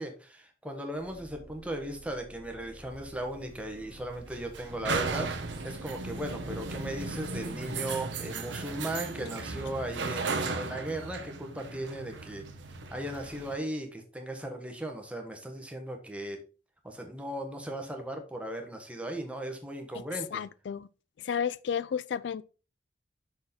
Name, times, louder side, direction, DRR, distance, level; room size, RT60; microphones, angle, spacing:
voice 1, 0.0-5.3 5.6-12.4 12.9-16.4 16.8-20.4, right 1 dB, 5° right, 1.3 m, -37 dB
sound 1, 0.9-10.7, equal, 65° right, 1.6 m, -51 dB
sound 2, 2.9-13.5, right 3 dB, 90° right, 1.1 m, -36 dB
voice 2, 20.3-20.9 21.2-22.4, left 7 dB, 75° left, 0.3 m, -32 dB
6.3 x 6.2 x 4.3 m
head